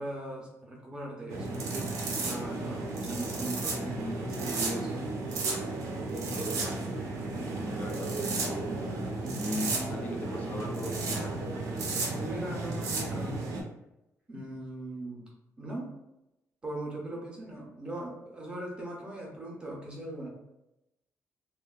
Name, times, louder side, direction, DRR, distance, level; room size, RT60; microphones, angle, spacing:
voice 1, 0.0-1.9 2.2-5.0 12.1-13.5 14.3-15.3 15.6-15.9 16.6-20.3, right 1 dB, 20° right, -2 dB, 0.6 m, -39 dB
sound 1, 1.3-13.6, right 3 dB, 85° right, 0.6 m, -33 dB
voice 2, 7.5-8.7 9.3-11.4, left 1 dB, 30° left, 1 dB, 0.4 m, -38 dB
3.0 x 2.1 x 2.3 m, 0.91 s
cardioid pair, 170°, 5 cm